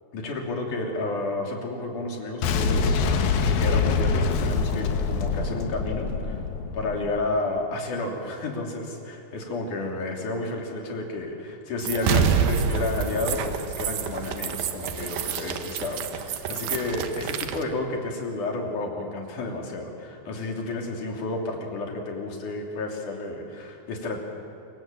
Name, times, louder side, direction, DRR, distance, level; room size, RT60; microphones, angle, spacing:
voice 1, 0.1-6.4 6.7-24.2, left 2 dB, 60° left, 1 dB, 4.5 m, -31 dB
Boom, 2.4-7.3, left 5 dB, 75° left, 3.1 m, -25 dB
sound 1, 11.8-17.6, right 7 dB, 75° right, 2.8 m, -27 dB
26.0 x 23.5 x 7.5 m, 2.8 s
omnidirectional pair, 4.2 m